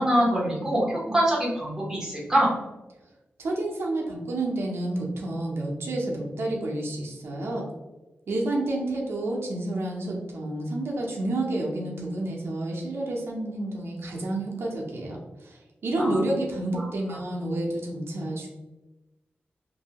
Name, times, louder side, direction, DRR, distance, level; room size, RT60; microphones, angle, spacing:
voice 1, 0.0-2.5 16.0-16.2 16.7-17.2, equal, 10° right, -5 dB, 1.0 m, -25 dB
voice 2, 3.4-7.7 8.3-18.5, right 1 dB, 85° right, -2 dB, 0.6 m, -29 dB
2.7 x 2.6 x 2.8 m, 1.1 s
wide cardioid pair, 160°, 4 cm